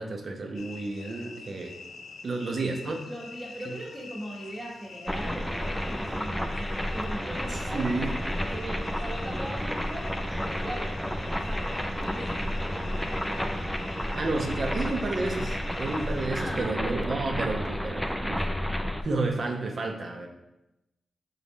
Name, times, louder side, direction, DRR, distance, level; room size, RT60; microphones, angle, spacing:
voice 1, 0.0-1.8 2.2-3.0 3.7-3.8 7.5-8.2 14.1-20.3, right 3 dB, 55° right, 3 dB, 0.6 m, -31 dB
sound 1, 0.5-16.2, left 4 dB, 90° left, 0.4 m, -46 dB
voice 2, 3.1-8.0 8.5-13.5 16.3-17.1, right 1 dB, 30° right, -6 dB, 1.0 m, -40 dB
sound 2, 5.1-19.0, equal, 5° left, 0.4 m, -31 dB
4.0 x 3.6 x 3.6 m, 0.91 s
cardioid pair, 75°, 0 cm